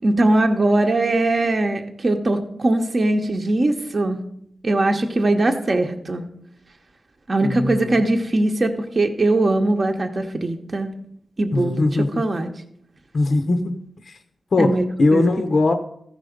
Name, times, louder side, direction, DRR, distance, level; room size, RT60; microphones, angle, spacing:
voice 1, 0.0-4.2 4.6-6.2 7.3-10.9 11.4-11.9 12.2-12.5 14.6-14.8 15.1-15.3, right 2 dB, 40° right, 4 dB, 0.8 m, -20 dB
voice 2, 7.4-8.0 11.5-12.3 13.1-13.8 14.0-14.2 14.5-15.7, left 2 dB, 55° left, 7 dB, 0.7 m, -20 dB
14.5 x 5.2 x 5.1 m, 0.71 s
wide cardioid pair, 105°, 0 cm